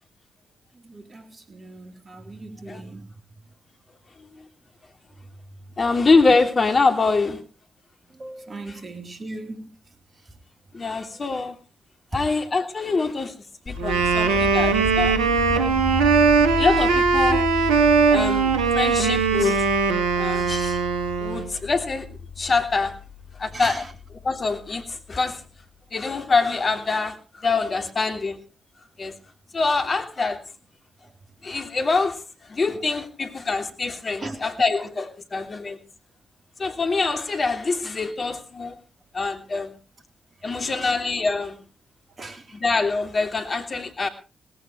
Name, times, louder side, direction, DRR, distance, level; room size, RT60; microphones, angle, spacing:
voice 1, 0.8-3.1 8.2-9.7 12.1-12.2 21.3-21.4 23.5-23.9 34.2-34.4 40.6-41.0 42.2-42.6, right 2 dB, 40° right, 3.7 m, -38 dB
voice 2, 5.8-7.4 8.7-8.8 10.7-11.6 12.1-13.3 13.7-15.2 16.6-17.4 18.1-19.7 20.2-20.8 21.2-22.1 22.4-22.9 23.4-23.8 24.2-25.4 25.9-28.4 29.0-29.1 29.5-30.4 31.4-32.2 32.5-35.8 36.6-38.7 39.1-39.7 40.4-41.6 42.5-44.1, left 4 dB, 40° left, 3.0 m, -24 dB
sound 1, 13.7-25.6, left 4 dB, 25° left, 3.8 m, -33 dB
Wind instrument woodwind instrument, 13.8-21.5, right 5 dB, 75° right, 1.9 m, -20 dB
18.5 x 17.0 x 3.2 m
hypercardioid pair, 40°, 0 cm